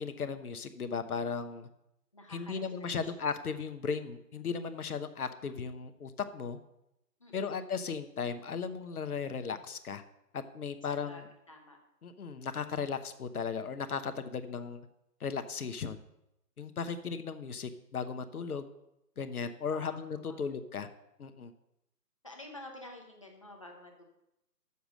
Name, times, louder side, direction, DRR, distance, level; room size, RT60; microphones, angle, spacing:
voice 1, 0.0-1.7 2.3-6.6 7.3-10.0 10.3-11.3 12.0-14.8 15.2-16.0 16.6-18.7 19.2-20.9 21.2-21.5, left 5 dB, 65° left, 10 dB, 0.9 m, -36 dB
voice 2, 2.1-3.1 7.2-7.7 10.9-11.2 11.5-11.8 19.7-20.0 20.3-20.4 22.2-24.0, left 1 dB, 20° left, 1 dB, 0.7 m, -50 dB
6.9 x 6.4 x 7.4 m, 0.86 s
hypercardioid pair, 160°, 48 cm